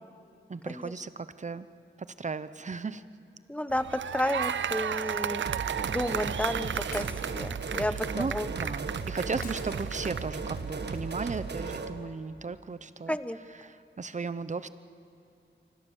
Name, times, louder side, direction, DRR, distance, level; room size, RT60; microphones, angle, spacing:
voice 1, 0.5-1.7 2.2-3.0 7.9-13.2 13.6-14.7, right 4 dB, 40° right, 13 dB, 0.9 m, -36 dB
voice 2, 3.5-5.4 5.9-8.7 13.1-13.4, left 1 dB, 5° left, 12 dB, 1.0 m, -32 dB
sound 1, 3.7-10.4, right 8 dB, 85° right, 0.6 m, -34 dB
Shatter, 4.4-5.3 6.9-8.0 9.4-10.4, left 3 dB, 55° left, 4.3 m, -48 dB
sound 2, 5.5-12.0, right 4 dB, 65° right, 1.6 m, -36 dB
26.5 x 24.5 x 7.3 m, 2.5 s
wide cardioid pair, 80°, 19 cm